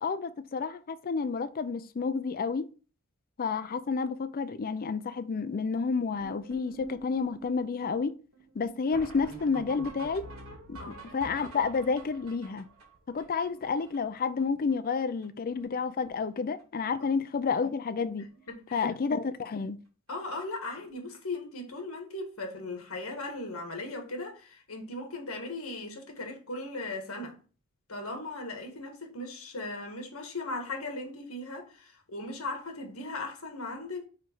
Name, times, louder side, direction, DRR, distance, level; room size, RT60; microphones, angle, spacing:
voice 1, 0.0-2.7 3.4-8.1 8.6-10.2 10.7-10.8 11.1-12.7 13.1-18.3 18.7-19.8, left 5 dB, 45° left, 0.4 m, -30 dB
sound 1, 6.2-14.4 14.7-14.8 15.0-15.3 15.5-16.1 16.4-16.6 17.4-17.5 17.9-18.0 18.3-18.5 20.8-20.9 23.2-23.3, right 3 dB, 80° right, 2.0 m, -47 dB
voice 2, 18.2-18.9 20.1-27.4 27.9-34.1, left 2 dB, 75° left, 1.8 m, -38 dB
4.9 x 4.6 x 4.5 m
head